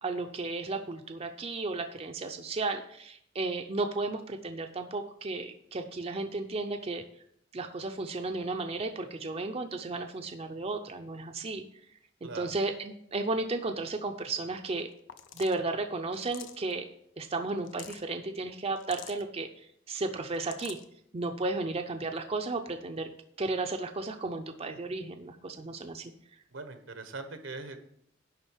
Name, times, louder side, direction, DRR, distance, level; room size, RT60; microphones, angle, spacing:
voice 1, 0.0-7.0 7.5-11.6 12.2-14.9 15.3-16.9 17.2-20.8 21.1-23.1 23.4-26.1, right 3 dB, 30° right, 5 dB, 0.6 m, -34 dB
voice 2, 12.2-12.5 26.5-27.8, right 3 dB, 80° right, 8 dB, 1.2 m, -41 dB
sound 1, 15.1-15.6 16.1-16.7 17.5-18.0 18.8-19.2 20.2-20.9, left 9 dB, 70° left, 0.7 m, -47 dB
10.5 x 3.8 x 7.3 m, 0.70 s
head